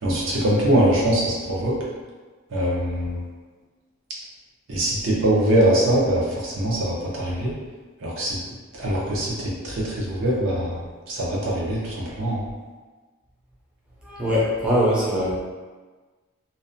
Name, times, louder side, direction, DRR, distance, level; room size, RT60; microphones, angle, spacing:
voice 1, 0.0-1.8 2.5-3.3 4.7-7.5 8.0-8.4 8.7-12.4, right 1 dB, 65° right, -5 dB, 0.6 m, -23 dB
voice 2, 14.1-15.4, equal, 5° right, -8 dB, 0.4 m, -22 dB
2.6 x 2.0 x 2.6 m, 1.4 s
head